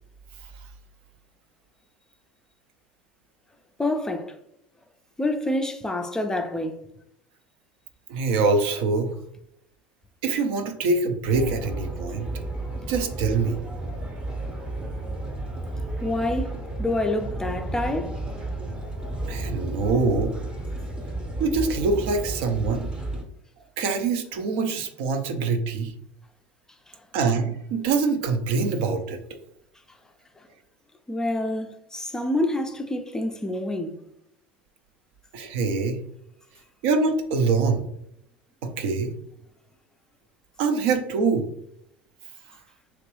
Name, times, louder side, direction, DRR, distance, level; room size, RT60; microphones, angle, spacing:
voice 1, 3.8-4.3 5.2-6.8 16.0-18.2 31.1-34.0, left 1 dB, 10° left, 0.4 m, -27 dB
voice 2, 8.1-9.1 10.2-12.3 12.9-13.6 19.3-20.3 21.4-22.9 23.8-25.9 27.1-29.2 35.3-36.0 36.8-37.8 38.6-39.1 40.6-41.5, right 4 dB, 70° right, 0.5 m, -24 dB
sound 1, 11.2-23.2, right 2 dB, 15° right, 0.7 m, -32 dB
3.0 x 2.8 x 3.0 m
hypercardioid pair, 95°, 6 cm